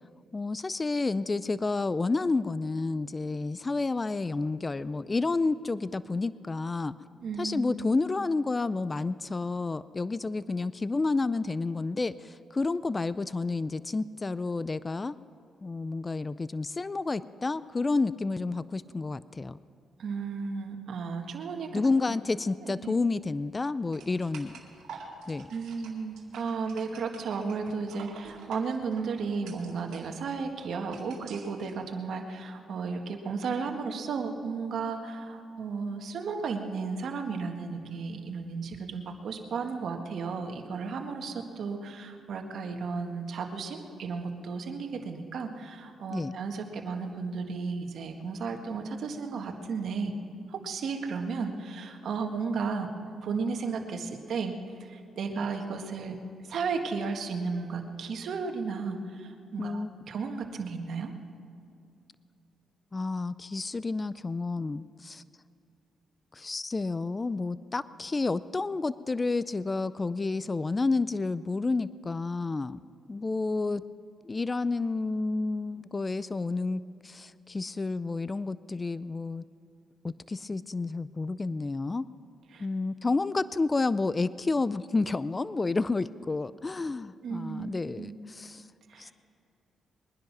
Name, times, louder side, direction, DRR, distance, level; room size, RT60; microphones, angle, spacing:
voice 1, 0.3-6.9 7.4-15.2 15.6-19.6 21.7-24.6 25.3-25.5 46.1-46.3 59.6-59.9 62.9-65.2 66.3-72.8 73.1-73.8 74.2-79.4 80.0-82.1 82.6-88.7 89.0-89.1, left 3 dB, 30° left, 17 dB, 0.4 m, -30 dB
voice 2, 7.2-7.6 20.0-21.8 22.6-22.9 25.5-50.1 50.5-52.9 53.2-54.5 54.8-56.2 56.5-61.1 82.5-82.7 87.2-87.7 88.0-88.1 88.9-89.1, right 5 dB, 70° right, 4 dB, 1.6 m, -34 dB
sound 1, 23.9-31.7, right 5 dB, 85° right, 2.2 m, -49 dB
22.0 x 10.5 x 6.0 m, 2.5 s
cardioid pair, 80°, 0 cm